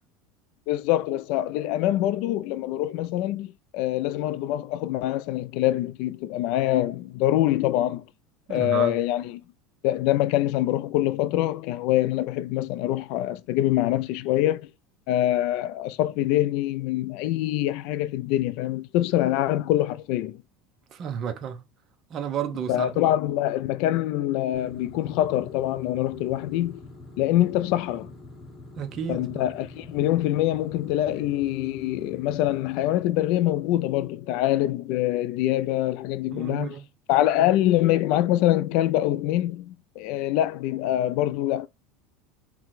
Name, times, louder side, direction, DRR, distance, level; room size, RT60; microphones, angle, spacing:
voice 1, 0.7-8.0 8.5-9.4 9.8-14.7 15.1-20.4 22.7-26.8 27.2-28.1 29.1-36.7 37.1-41.7, left 14 dB, 60° left, 0.3 m, -24 dB
voice 2, 8.5-8.9 20.9-21.6 22.1-22.9 28.8-29.5 36.3-36.8, right 8 dB, 35° right, 0.6 m, -32 dB
sound 1, 24.5-34.3, left 2 dB, 10° left, 0.9 m, -46 dB
4.5 x 2.2 x 3.8 m
supercardioid pair, 145°, 0 cm